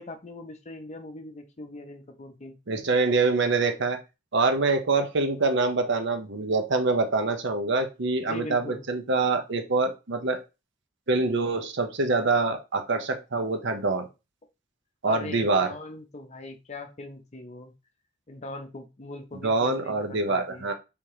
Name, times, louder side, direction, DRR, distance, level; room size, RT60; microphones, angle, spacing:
voice 1, 0.0-2.6 8.2-8.9 15.0-17.7 18.3-20.7, left 2 dB, 35° left, 7 dB, 0.6 m, -40 dB
voice 2, 2.7-4.0 4.3-10.4 11.1-14.1 15.0-15.7 19.4-20.7, right 3 dB, 60° right, 6 dB, 0.8 m, -25 dB
3.5 x 2.9 x 4.7 m, 0.27 s
head